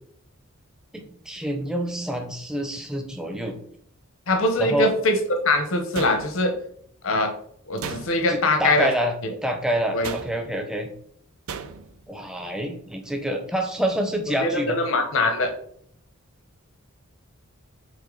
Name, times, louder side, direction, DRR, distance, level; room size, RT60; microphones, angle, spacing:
voice 1, 0.9-3.6 4.6-4.9 8.3-9.1 9.4-10.9 12.1-14.8, right 1 dB, 5° right, 4 dB, 0.6 m, -27 dB
voice 2, 4.3-6.5 7.0-7.3 7.7-8.9 9.9-10.1 14.4-15.5, left 2 dB, 65° left, 6 dB, 0.9 m, -22 dB
sound 1, 5.9-6.7 7.8-8.5 10.0-10.6 11.5-12.0, right 5 dB, 85° right, 0.6 m, -36 dB
6.5 x 3.7 x 3.8 m, 0.64 s
head